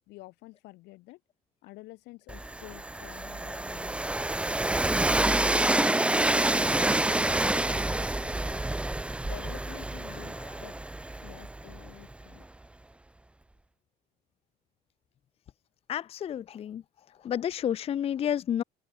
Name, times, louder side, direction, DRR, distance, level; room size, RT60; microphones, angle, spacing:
voice 1, 0.1-1.2 1.6-4.3 7.7-8.6 9.2-10.8 11.2-12.5, left 21 dB, 85° left, 5.7 m, -49 dB
Train, 2.3-12.1, right 1 dB, 5° right, 1.2 m, -28 dB
voice 2, 15.9-16.8 17.2-18.6, left 9 dB, 35° left, 0.6 m, -30 dB
open air
cardioid pair, 135°, 17 cm